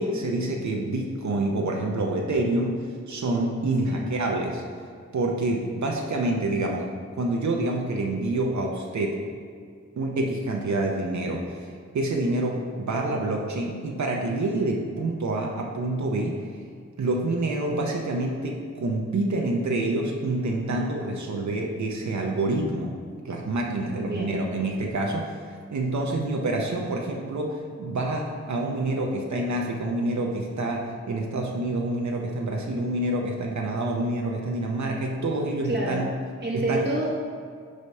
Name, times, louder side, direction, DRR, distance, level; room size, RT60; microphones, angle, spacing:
voice 1, 0.0-2.8 3.1-4.6 5.1-6.8 7.1-9.2 10.0-11.7 11.9-16.4 17.0-22.9 23.2-25.3 25.7-36.1 36.5-36.9, right 2 dB, 75° right, 0 dB, 0.7 m, -27 dB
voice 2, 24.0-24.4 35.6-36.1 36.4-37.1, right 1 dB, 35° right, -5 dB, 0.9 m, -28 dB
4.9 x 4.0 x 5.5 m, 2.1 s
cardioid pair, 50°, 29 cm